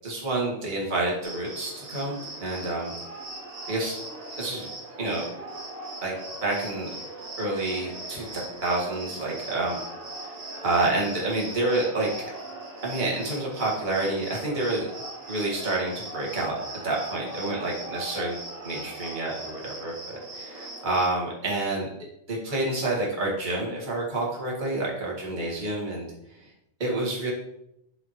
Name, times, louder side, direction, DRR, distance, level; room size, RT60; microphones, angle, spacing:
voice 1, 0.0-2.9 3.7-4.0 4.4-4.7 5.0-5.2 6.0-6.1 6.4-6.9 7.4-9.8 10.6-12.1 12.8-14.9 15.3-16.5 16.8-18.4 18.6-21.9 22.3-26.1 26.8-27.3, right 2 dB, 30° right, -3 dB, 0.9 m, -28 dB
Cricket, 1.2-21.1, right 2 dB, 65° right, 3.9 m, -39 dB
11.0 x 3.9 x 3.1 m, 0.80 s
omnidirectional pair, 3.7 m